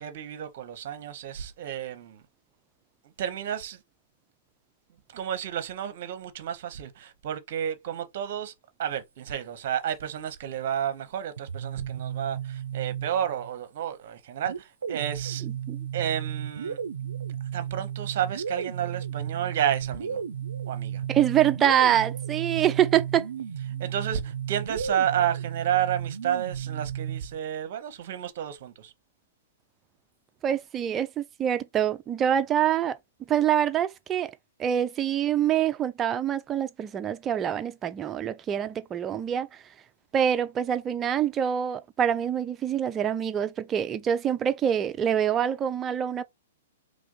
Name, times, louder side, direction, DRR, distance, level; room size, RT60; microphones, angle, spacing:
voice 1, 0.0-2.2 3.2-3.8 5.1-8.5 8.8-15.4 15.9-16.8 17.5-20.2 20.6-21.0 23.8-28.9, right 10 dB, 55° right, 0.7 m, -31 dB
sound 1, 11.4-13.5 14.5-27.4, right 9 dB, 85° right, 0.4 m, -34 dB
voice 2, 21.1-23.3 30.4-33.0 33.3-34.3 34.6-39.5 40.1-46.2, right 9 dB, 20° right, 0.4 m, -25 dB
3.2 x 2.5 x 3.7 m
hypercardioid pair, 125°, 0 cm